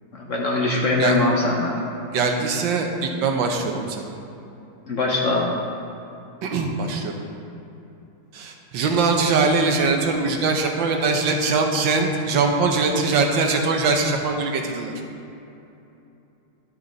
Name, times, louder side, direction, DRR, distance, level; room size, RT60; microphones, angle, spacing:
voice 1, 0.1-1.7 4.9-5.5, left 2 dB, 50° left, -2 dB, 1.1 m, -21 dB
voice 2, 2.1-4.0 6.4-7.1 8.3-14.9, right 4 dB, 75° right, 3 dB, 1.5 m, -22 dB
11.5 x 6.7 x 3.9 m, 2.8 s
omnidirectional pair, 2.1 m